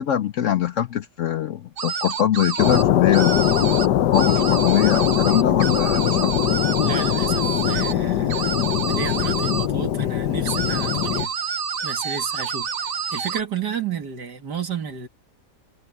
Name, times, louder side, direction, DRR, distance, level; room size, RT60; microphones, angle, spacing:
voice 1, 0.0-3.5 4.1-6.3, left 10 dB, 65° left, 0.8 m, -22 dB
sound 1, 1.8-2.8 3.1-3.9 4.1-7.9 8.3-9.7 10.5-13.4, right 6 dB, 45° right, 0.8 m, -28 dB
sound 2, 2.6-11.3, left 11 dB, 85° left, 1.5 m, -21 dB
voice 2, 6.8-11.3 11.8-15.1, right 6 dB, 75° right, 2.7 m, -32 dB
omnidirectional pair, 1.8 m